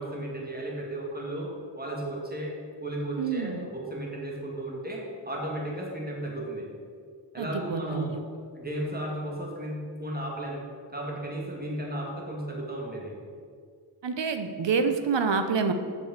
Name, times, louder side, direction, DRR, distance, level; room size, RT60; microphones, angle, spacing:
voice 1, 0.0-1.5 1.8-2.6 2.8-6.7 7.3-8.2 8.5-10.6 10.9-13.1, right 1 dB, 20° right, -2 dB, 2.4 m, -34 dB
voice 2, 3.2-3.7 7.4-8.1 14.0-15.7, right 5 dB, 75° right, 8 dB, 0.8 m, -27 dB
7.6 x 6.8 x 7.3 m, 2.2 s
wide cardioid pair, 75°, 44 cm